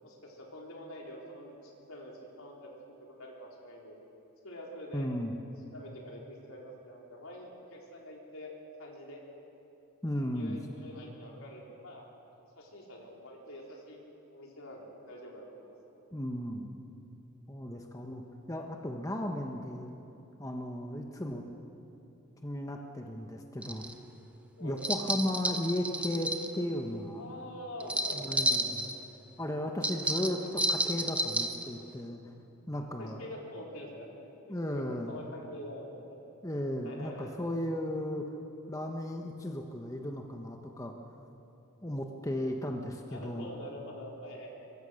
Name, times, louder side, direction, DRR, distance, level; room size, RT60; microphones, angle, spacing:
voice 1, 0.0-2.7 3.0-4.0 4.4-5.1 5.7-8.5 8.8-9.2 10.3-12.1 12.6-15.8 17.9-18.2 24.6-24.8 27.2-28.9 33.0-36.2 36.8-37.3 43.1-44.7, left 1 dB, 75° left, -1 dB, 4.2 m, -46 dB
voice 2, 4.9-5.3 10.0-10.6 16.1-16.7 17.5-18.2 18.5-19.9 20.4-21.4 22.4-23.9 24.6-27.2 28.1-28.9 29.4-32.2 32.7-33.2 34.5-35.1 36.4-38.3 38.7-40.9 41.8-43.5, left 1 dB, 15° left, 2 dB, 1.2 m, -35 dB
sound 1, 23.6-23.9 24.8-26.5 27.8-28.9 29.8-31.7, right 1 dB, 5° right, 0.9 m, -31 dB
23.5 x 23.0 x 6.5 m, 2.8 s
head